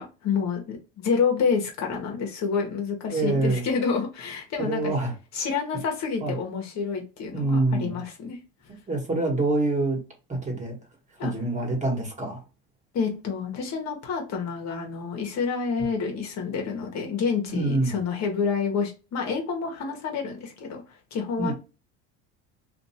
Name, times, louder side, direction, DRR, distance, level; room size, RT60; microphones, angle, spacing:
voice 1, 0.0-4.9 5.3-8.4 11.2-11.3 12.9-20.8 21.1-21.5, left 5 dB, 55° left, 1.3 m, -28 dB
voice 2, 3.1-3.6 4.6-5.1 6.2-6.3 7.3-8.0 8.9-10.0 10.3-10.7 11.2-12.4 17.5-17.9 21.4-21.5, right 2 dB, 20° right, 1.4 m, -25 dB
2.7 x 2.6 x 4.2 m
supercardioid pair, 110°, 32 cm